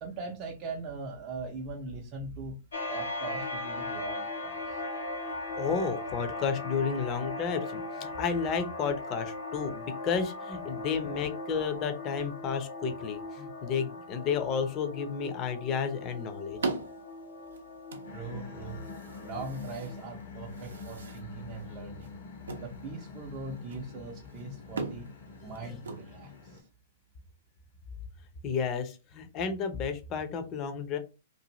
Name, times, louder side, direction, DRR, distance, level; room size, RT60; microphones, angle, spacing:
voice 1, 0.0-2.6 2.9-4.8 18.1-18.8 19.2-22.1 22.6-25.1 25.4-26.6, right 3 dB, 35° right, 0 dB, 0.5 m, -40 dB
sound 1, 2.7-20.0, left 2 dB, 80° left, 0.7 m, -39 dB
voice 2, 5.5-16.6 28.4-31.0, left 6 dB, 35° left, 8 dB, 0.6 m, -32 dB
sound 2, 15.6-26.7, right 3 dB, 80° right, 0.5 m, -42 dB
sound 3, 18.0-26.6, left 4 dB, 65° left, 1.1 m, -46 dB
2.6 x 2.5 x 2.9 m, 0.30 s
hypercardioid pair, 115°, 0 cm